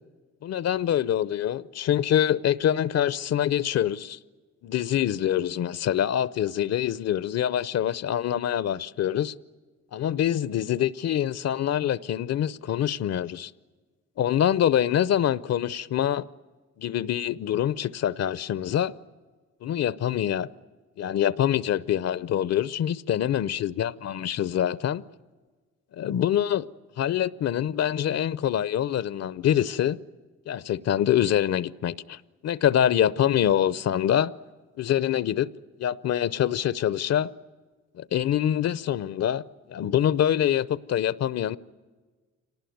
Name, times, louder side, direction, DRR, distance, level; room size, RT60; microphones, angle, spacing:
voice 1, 0.4-4.2 4.6-9.3 9.9-13.5 14.2-16.2 16.8-18.9 19.6-20.5 21.0-25.0 25.9-26.7 27.0-30.0 30.5-34.3 34.8-35.5 35.8-37.3 37.9-39.4 39.7-41.6, left 10 dB, 60° left, 0.7 m, -25 dB
25.0 x 19.0 x 9.3 m
cardioid pair, 90°, 30 cm